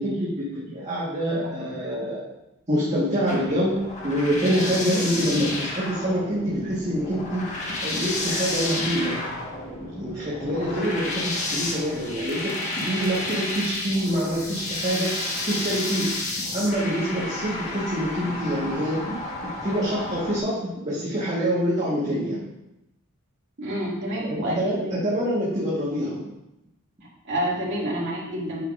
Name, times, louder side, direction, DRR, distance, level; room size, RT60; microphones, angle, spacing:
voice 1, 0.0-2.2 2.7-3.8 4.0-9.2 9.8-15.1 15.5-16.1 16.5-19.2 19.6-22.4 24.2-26.2, equal, 30° right, -8 dB, 1.5 m, -26 dB
sound 1, 3.3-20.4, left 2 dB, 35° left, 1.4 m, -31 dB
voice 2, 23.6-25.0 27.2-28.7, equal, 60° right, -6 dB, 2.4 m, -28 dB
9.0 x 5.9 x 2.6 m, 0.90 s
head